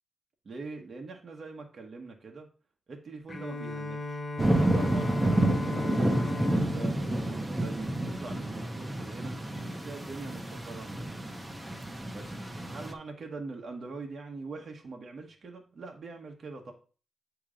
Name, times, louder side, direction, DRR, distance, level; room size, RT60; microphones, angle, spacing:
voice 1, 0.4-2.5 2.9-4.2 4.5-9.4 9.7-11.1 12.1-16.7, right 3 dB, 45° right, 2 dB, 1.0 m, -43 dB
Bowed string instrument, 3.3-8.5, left 2 dB, 25° left, 0.8 m, -37 dB
sound 1, 4.4-12.9, right 1 dB, 10° right, 0.8 m, -29 dB
8.6 x 3.0 x 4.9 m, 0.37 s
wide cardioid pair, 140°, 0 cm